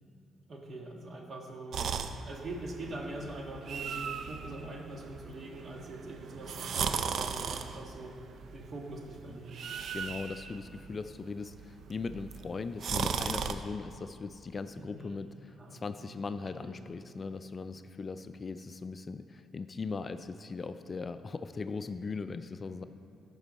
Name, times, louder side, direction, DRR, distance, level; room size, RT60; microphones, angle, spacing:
voice 1, 0.5-1.8 2.2-8.2 8.5-9.6 14.8-15.2 15.5-16.2 16.6-16.8, right 1 dB, 45° right, 1 dB, 1.5 m, -43 dB
sound 1, 1.7-13.5, right 6 dB, 60° right, 0.4 m, -38 dB
voice 2, 9.9-22.8, left 4 dB, 35° left, 10 dB, 0.3 m, -39 dB
14.0 x 5.4 x 4.1 m, 2.5 s
cardioid pair, 90°, 0 cm